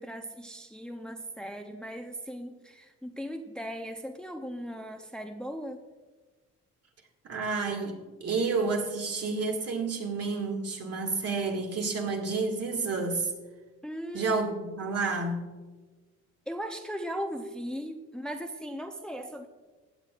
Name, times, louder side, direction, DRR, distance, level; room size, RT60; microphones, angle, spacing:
voice 1, 0.0-5.8 7.4-7.5 13.8-14.3 16.5-19.5, equal, 5° left, 5 dB, 0.6 m, -38 dB
voice 2, 7.2-13.3 14.1-15.5, right 4 dB, 55° right, 2 dB, 2.0 m, -30 dB
16.0 x 8.2 x 2.5 m, 1.3 s
cardioid pair, 90°, 30 cm